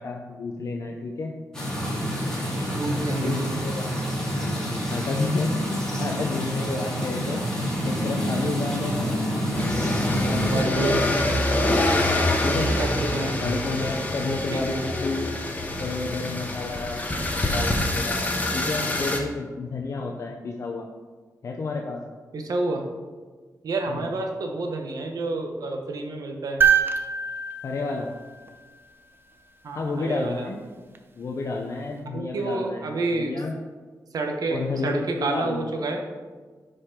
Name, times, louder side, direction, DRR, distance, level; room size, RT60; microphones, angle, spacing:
voice 1, 0.0-1.5 2.9-4.0 4.3-5.6 6.0-7.4 7.8-9.1 10.1-11.0 11.2-11.5 12.4-12.9 13.4-15.3 15.8-20.9 21.4-22.0 23.9-24.1 27.6-28.1 29.7-30.7 31.2-33.6 34.5-35.9, left 3 dB, 50° left, 1 dB, 0.6 m, -31 dB
sound 1, 1.5-10.6, equal, 10° left, 2.5 m, -27 dB
voice 2, 2.7-3.4 10.4-11.0 12.8-13.3 14.5-14.8 22.3-22.8 23.6-26.6 29.6-30.5 32.1-33.4 34.1-36.0, right 2 dB, 70° right, 3 dB, 1.1 m, -29 dB
sound 2, 9.5-19.2, left 1 dB, 25° left, 1.0 m, -25 dB
sound 3, 26.6-28.9 30.9-31.0, right 7 dB, 35° right, 0.6 m, -24 dB
9.9 x 5.1 x 3.7 m, 1.4 s
wide cardioid pair, 120°, 7 cm